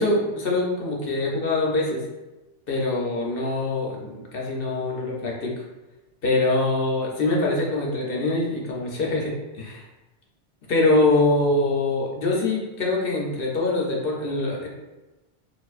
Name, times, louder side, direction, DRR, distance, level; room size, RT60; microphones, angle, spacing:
voice 1, 0.0-2.0 2.7-5.5 6.2-9.8 10.7-14.7, left 2 dB, 60° left, -2 dB, 0.9 m, -24 dB
4.5 x 2.6 x 2.4 m, 1.1 s
omnidirectional pair, 1.1 m